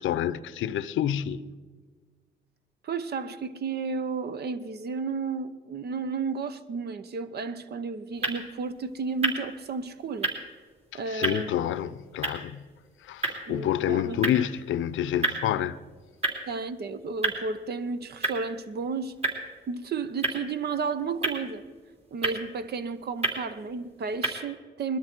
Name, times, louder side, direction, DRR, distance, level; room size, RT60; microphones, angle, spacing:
voice 1, 0.0-1.5 10.9-12.6 13.0-15.8, left 11 dB, 75° left, 0.7 m, -28 dB
voice 2, 2.8-10.3 10.9-11.7 13.5-14.2 16.5-19.2 19.7-21.6 22.1-25.0, right 4 dB, 55° right, 0.9 m, -32 dB
sound 1, 8.1-24.3, right 2 dB, 30° right, 3.3 m, -35 dB
20.5 x 12.5 x 4.5 m
cardioid pair, 90°, 20 cm